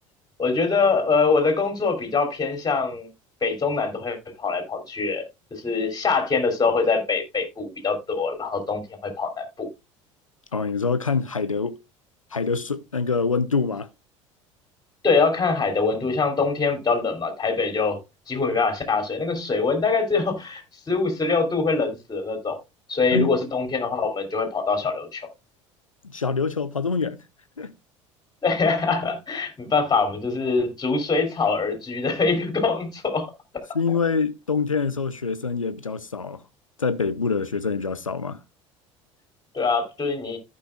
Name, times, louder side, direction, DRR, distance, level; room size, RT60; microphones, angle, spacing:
voice 1, 0.4-3.1 3.4-5.2 5.5-9.7 15.0-18.0 18.3-20.6 20.9-22.6 22.9-25.2 28.4-33.3 39.5-40.4, left 4 dB, 25° left, 3.0 m, -24 dB
voice 2, 10.5-11.8 12.3-13.9 23.1-23.4 26.0-27.2 27.6-27.7 33.7-36.4 36.8-38.4, left 4 dB, 90° left, 0.6 m, -25 dB
14.5 x 5.4 x 2.3 m
figure-of-eight pair, 65°, 16 cm